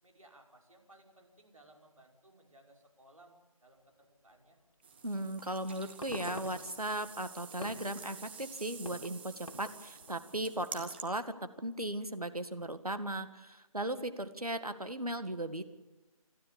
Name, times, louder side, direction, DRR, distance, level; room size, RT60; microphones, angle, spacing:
voice 1, 0.0-4.6, right 1 dB, 65° right, 1 dB, 5.2 m, -61 dB
sound 1, 4.8-11.0, right 6 dB, 15° right, 1.2 m, -49 dB
sound 2, 4.9-5.1 5.6-10.2, left 1 dB, 60° left, 3.4 m, -49 dB
voice 2, 5.0-15.6, right 1 dB, 85° right, 9 dB, 2.0 m, -37 dB
29.0 x 13.0 x 8.5 m, 1.1 s
figure-of-eight pair, 160°, 19 cm